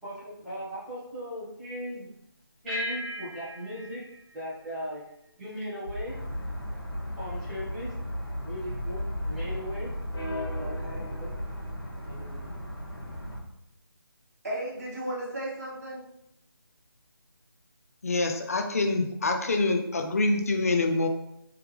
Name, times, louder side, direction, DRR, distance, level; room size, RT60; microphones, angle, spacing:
voice 1, 0.0-2.1 2.6-4.0 4.3-5.0 5.4-6.2 7.2-8.0 8.4-9.9 11.2-11.3 12.0-12.5, equal, ahead, -14 dB, 0.8 m, -38 dB
sound 1, 2.7-5.4, equal, 20° right, 1.3 m, -38 dB
sound 2, 5.8-11.7, left 1 dB, 75° right, 1.0 m, -36 dB
sound 3, 6.1-13.4, equal, 85° left, 1.4 m, -38 dB
voice 2, 10.6-11.1 14.4-16.0, right 1 dB, 40° right, -6 dB, 1.2 m, -35 dB
voice 3, 18.0-21.1, left 2 dB, 40° left, 5 dB, 0.5 m, -26 dB
3.4 x 3.2 x 3.1 m, 0.80 s
figure-of-eight pair, 170°, 13 cm